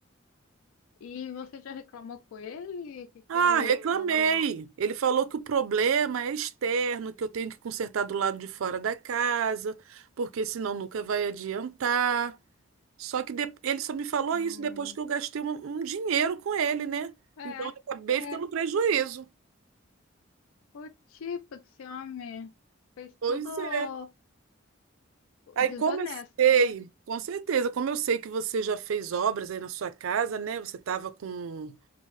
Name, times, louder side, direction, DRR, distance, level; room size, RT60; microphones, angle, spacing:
voice 1, 1.0-3.1 3.3-4.4 14.3-15.0 17.4-17.8 18.1-18.4 20.7-22.5 23.0-24.1 25.5-26.7, left 6 dB, 85° left, 0.3 m, -40 dB
voice 2, 3.3-12.4 13.0-17.1 17.4-19.2 23.2-23.9 25.6-26.1 26.4-31.7, right 6 dB, 80° right, 0.4 m, -28 dB
4.5 x 2.0 x 3.0 m
head